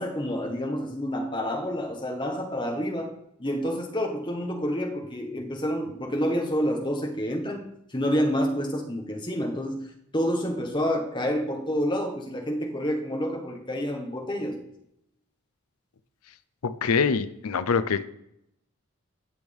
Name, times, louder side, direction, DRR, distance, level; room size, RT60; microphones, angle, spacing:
voice 1, 0.0-3.1 3.4-7.6 7.9-9.8 10.1-14.6, equal, 20° left, 2 dB, 1.4 m, -28 dB
voice 2, 16.6-18.0, left 5 dB, 90° left, 15 dB, 0.6 m, -24 dB
17.5 x 6.3 x 3.6 m, 0.77 s
head